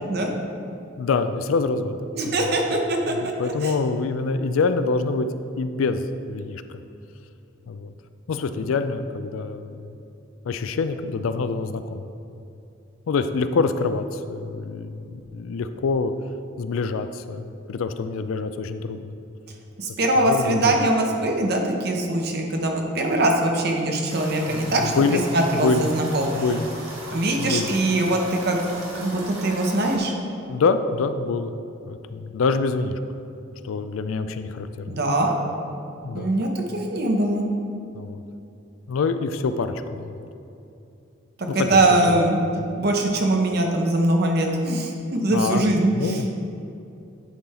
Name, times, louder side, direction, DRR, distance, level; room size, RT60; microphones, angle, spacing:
voice 1, 1.0-2.8 3.1-5.3 5.6-6.0 6.3-6.8 7.7-7.9 8.3-9.9 10.5-12.1 13.1-16.1 16.6-19.1 20.1-20.8 24.5-25.2 25.5-25.9 26.3-26.7 27.4-27.7 30.5-31.5 31.9-33.0 33.6-34.9 36.0-36.3 37.9-38.2 38.9-40.2 41.5-42.2 45.3-46.3, left 4 dB, 85° left, 10 dB, 0.4 m, -26 dB
voice 2, 2.1-3.1 3.4-3.7 19.8-26.4 27.1-28.7 29.0-30.1 34.9-35.4 36.1-36.6 36.9-37.4 41.4-42.4 42.8-46.2, right 1 dB, 50° right, 1 dB, 0.9 m, -22 dB
sound 1, 24.1-30.0, right 1 dB, 80° right, 1.4 m, -38 dB
9.8 x 3.9 x 4.2 m, 2.8 s
head